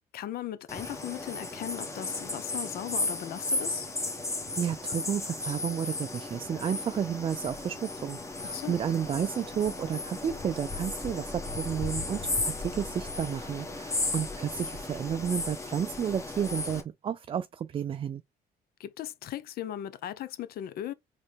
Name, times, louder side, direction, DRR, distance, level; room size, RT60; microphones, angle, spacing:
voice 1, 0.1-3.9 8.4-8.8 18.8-20.9, left 12 dB, 65° left, 0.7 m, -38 dB
sound 1, 0.7-16.8, left 2 dB, 15° left, 1.3 m, -35 dB
voice 2, 4.6-18.2, right 8 dB, 30° right, 0.4 m, -32 dB
4.3 x 3.1 x 3.4 m
cardioid pair, 110°, 17 cm